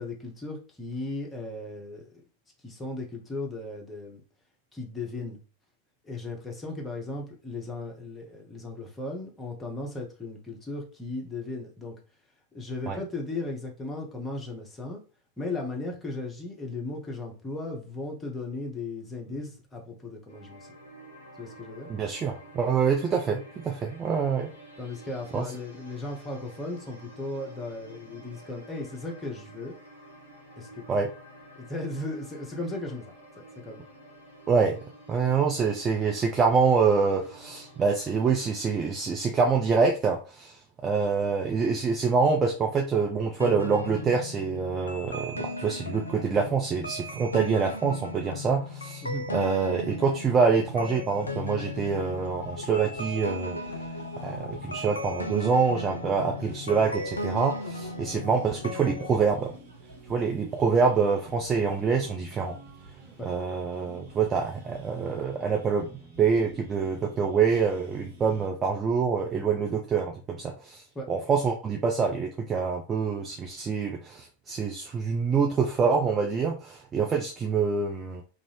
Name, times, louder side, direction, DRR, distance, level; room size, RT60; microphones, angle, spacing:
voice 1, 0.0-2.1 2.6-4.2 4.7-5.4 6.0-12.0 12.5-15.0 15.4-20.7 21.4-21.9 24.8-29.8 30.6-30.8 31.6-33.1 33.6-33.8 49.0-49.3 63.2-63.3 70.9-71.1, left 2 dB, 10° left, 0 dB, 0.8 m, -36 dB
sound 1, 20.3-38.5, right 1 dB, 90° right, 1.2 m, -50 dB
voice 2, 21.9-24.5 25.3-25.4 30.9-31.1 34.5-34.8 35.1-53.8 54.2-59.5 60.1-62.6 63.2-78.2, right 5 dB, 20° right, 2 dB, 0.4 m, -26 dB
sound 2, 43.4-59.1, left 2 dB, 75° left, 0.4 m, -36 dB
sound 3, 51.0-68.5, right 2 dB, 55° right, 0.9 m, -50 dB
2.5 x 2.4 x 3.2 m, 0.36 s
figure-of-eight pair, 90°, 0 cm